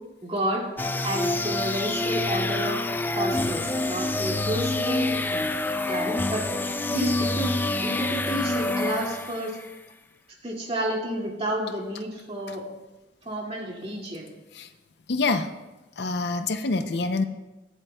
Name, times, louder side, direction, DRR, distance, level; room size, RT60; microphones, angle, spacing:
voice 1, 0.2-0.7 1.0-2.8 3.1-5.4 5.9-6.5 6.9-7.5 7.8-9.6 10.4-12.6 13.2-14.3, right 1 dB, 30° right, -2 dB, 2.2 m, -30 dB
sound 1, 0.8-9.7, left 2 dB, 10° left, 0.3 m, -27 dB
voice 2, 15.1-15.5 16.0-17.2, left 3 dB, 60° left, 9 dB, 0.5 m, -26 dB
21.5 x 7.7 x 2.2 m, 1.1 s
head